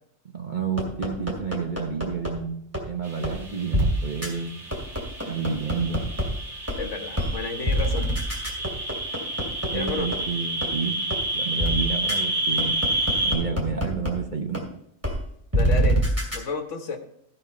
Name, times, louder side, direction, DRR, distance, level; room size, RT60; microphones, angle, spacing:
voice 1, 0.3-4.6 5.3-6.0 9.7-11.0 11.3-12.8 13.2-14.6, right 5 dB, 40° right, 3 dB, 1.0 m, -30 dB
sound 1, 0.8-2.3 2.7-2.8 3.2-3.3 3.7-3.9 4.2-4.3 4.7-6.2 6.7-6.8 7.2-7.3 7.7-10.2 10.6-10.7 11.1-11.2 11.6-11.7 12.1-12.2 12.6-14.1 14.5-14.6 15.0-15.1 15.5-16.4, right 1 dB, 10° right, 2.5 m, -24 dB
sound 2, 3.0-13.3, right 1 dB, 60° right, 2.4 m, -30 dB
voice 2, 6.8-8.1 9.7-10.1 15.5-16.0 16.3-17.0, left 4 dB, 65° left, 6 dB, 1.4 m, -31 dB
15.5 x 5.5 x 4.3 m, 0.71 s
omnidirectional pair, 1.4 m